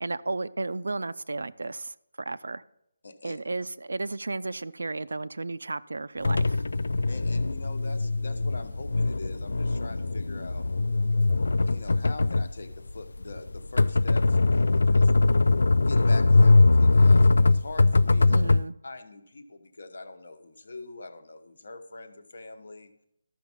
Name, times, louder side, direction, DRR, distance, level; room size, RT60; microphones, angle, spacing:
voice 1, 0.0-2.6 3.2-6.6 18.3-18.7, right 3 dB, 85° right, 15 dB, 0.4 m, -33 dB
voice 2, 3.0-3.4 7.1-10.6 11.7-15.1 15.7-18.4 18.8-22.9, left 3 dB, 50° left, 9 dB, 1.0 m, -42 dB
sound 1, 6.2-18.6, left 3 dB, 70° left, 0.3 m, -21 dB
13.0 x 6.1 x 5.5 m, 0.78 s
hypercardioid pair, 180°, 0 cm